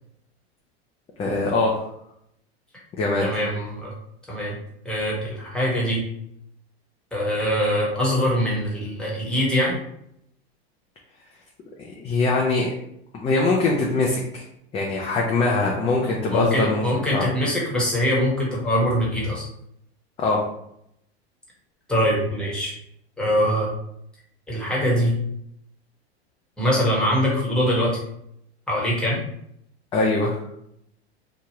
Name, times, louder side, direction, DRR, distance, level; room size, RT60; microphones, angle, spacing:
voice 1, 1.2-1.9 3.0-3.3 12.0-12.7 13.2-14.4 14.7-16.8 17.1-17.3 20.2-20.4 29.9-30.4, left 3 dB, 20° left, -2 dB, 0.4 m, -22 dB
voice 2, 3.2-3.9 4.3-4.6 4.8-6.0 7.1-9.8 16.3-19.4 21.9-22.7 23.2-23.7 24.5-25.1 26.6-28.0 28.7-29.2, equal, 5° left, -5 dB, 1.1 m, -23 dB
2.9 x 2.2 x 2.9 m, 0.75 s
hypercardioid pair, 110°, 33 cm